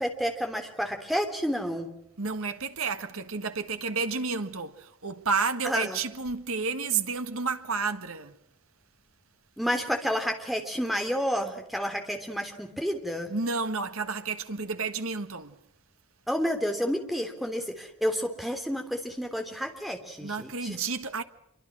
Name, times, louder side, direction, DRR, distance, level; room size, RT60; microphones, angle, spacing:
voice 1, 0.0-1.9 5.6-6.0 9.6-13.3 16.3-20.8, equal, ahead, 3.2 m, -30 dB
voice 2, 2.2-8.4 13.3-15.6 20.2-21.2, right 4 dB, 65° right, 1.6 m, -31 dB
27.0 x 24.5 x 6.2 m
head